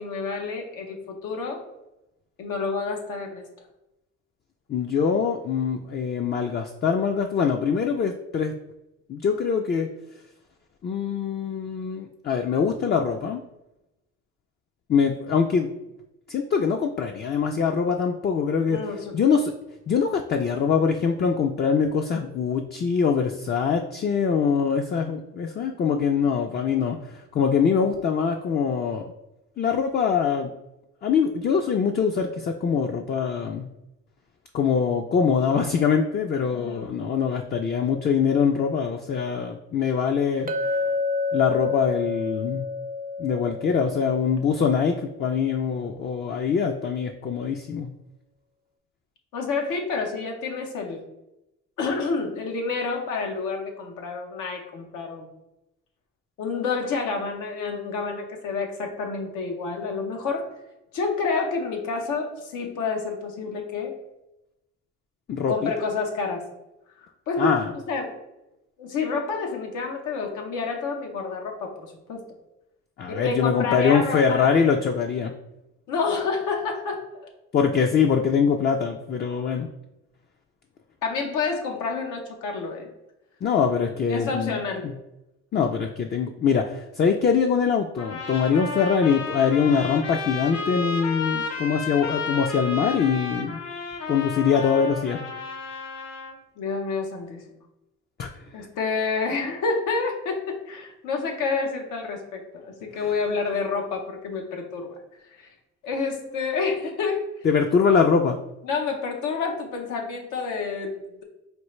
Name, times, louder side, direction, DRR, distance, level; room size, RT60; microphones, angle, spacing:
voice 1, 0.0-1.6 2.4-3.5 18.7-19.2 36.5-36.9 49.3-51.0 51.8-55.3 56.4-60.5 60.9-64.0 65.5-66.5 67.0-67.5 67.9-68.1 68.8-72.3 73.1-74.5 75.9-77.0 81.0-82.9 84.1-84.9 96.6-97.5 98.5-105.0 105.4-105.5 105.8-107.3 108.6-111.2, left 4 dB, 90° left, 2 dB, 0.8 m, -29 dB
voice 2, 4.7-8.5 9.1-9.9 10.8-13.4 14.9-15.7 16.3-18.8 19.1-19.5 19.9-29.1 29.6-30.5 31.0-33.7 34.5-40.8 41.3-42.7 43.2-47.9 65.3-65.7 67.4-67.7 73.0-75.3 77.5-79.7 83.4-84.9 85.5-93.6 94.1-95.2 98.2-98.3 98.6-98.7 107.4-108.4, left 6 dB, 35° left, 3 dB, 0.4 m, -23 dB
Chink clink, 40.5-44.9, left 3 dB, 30° right, 0.4 m, -29 dB
sound 1, 88.0-96.3, left 4 dB, 55° left, 0.8 m, -32 dB
4.5 x 2.4 x 3.1 m, 0.91 s
cardioid pair, 90°, 30 cm